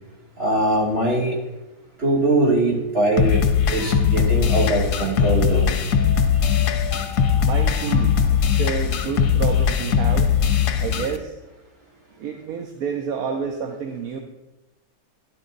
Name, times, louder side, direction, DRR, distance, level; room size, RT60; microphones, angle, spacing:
voice 1, 0.4-1.4 2.0-5.7, right 2 dB, 40° right, -4 dB, 2.5 m, -21 dB
sound 1, 3.2-11.2, left 7 dB, 85° left, 1.3 m, -20 dB
sound 2, 3.8-4.8 5.9-9.2, left 3 dB, 55° left, 2.2 m, -39 dB
voice 2, 7.4-10.3 10.8-11.3 12.2-14.2, right 6 dB, 70° right, 3 dB, 1.2 m, -29 dB
12.0 x 10.5 x 2.6 m, 1.1 s
omnidirectional pair, 1.7 m